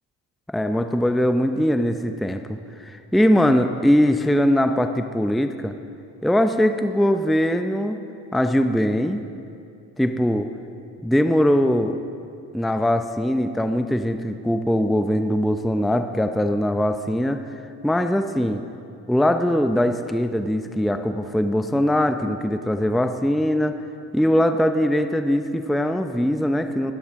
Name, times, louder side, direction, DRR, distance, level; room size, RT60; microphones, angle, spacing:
voice 1, 0.5-5.7 6.2-8.0 8.3-9.2 10.0-10.5 11.0-12.0 12.5-17.4 17.8-18.6 19.1-23.8 24.1-26.9, equal, ahead, 7 dB, 0.7 m, -21 dB
21.5 x 13.0 x 3.7 m, 2.5 s
hypercardioid pair, 50°, 46 cm